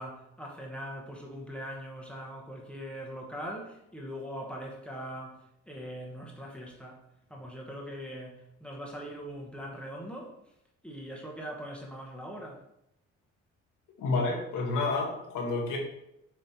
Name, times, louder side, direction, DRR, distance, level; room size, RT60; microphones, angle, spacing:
voice 1, 0.0-7.0 7.3-10.4 10.8-12.7, equal, 5° left, -1 dB, 1.2 m, -41 dB
voice 2, 14.0-15.8, left 3 dB, 85° left, 0 dB, 1.7 m, -29 dB
6.6 x 3.3 x 4.3 m, 0.82 s
cardioid pair, 90°, 30 cm